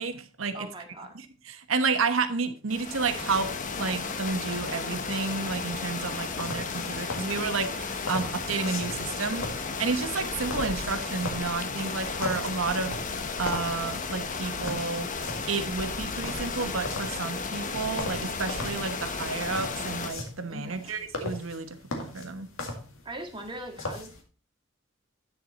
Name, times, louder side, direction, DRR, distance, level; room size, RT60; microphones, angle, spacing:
voice 1, 0.0-0.7 1.1-3.5 3.8-9.5 9.8-12.9 13.4-15.1 15.5-22.5, right 4 dB, 80° right, 10 dB, 1.1 m, -31 dB
voice 2, 0.5-1.2 20.5-21.0 23.1-24.1, right 1 dB, 25° right, 3 dB, 1.8 m, -40 dB
sound 1, 2.7-20.1, left 4 dB, 40° left, 0.9 m, -34 dB
sound 2, 6.3-24.2, left 2 dB, 80° left, 1.9 m, -40 dB
9.5 x 6.9 x 4.1 m, 0.34 s
head